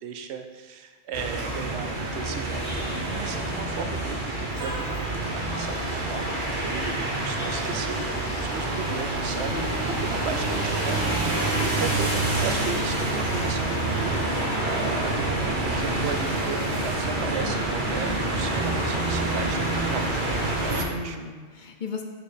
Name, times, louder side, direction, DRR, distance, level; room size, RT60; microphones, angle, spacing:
voice 1, 0.0-8.0 8.4-11.0 11.2-21.2, right 6 dB, 70° right, 7 dB, 0.9 m, -36 dB
sound 1, 1.1-20.8, right 2 dB, 45° right, 1.1 m, -27 dB
voice 2, 9.5-10.2 11.7-12.0 20.7-22.0, left 4 dB, 50° left, 4 dB, 0.7 m, -36 dB
5.1 x 4.9 x 4.9 m, 1.5 s
omnidirectional pair, 1.2 m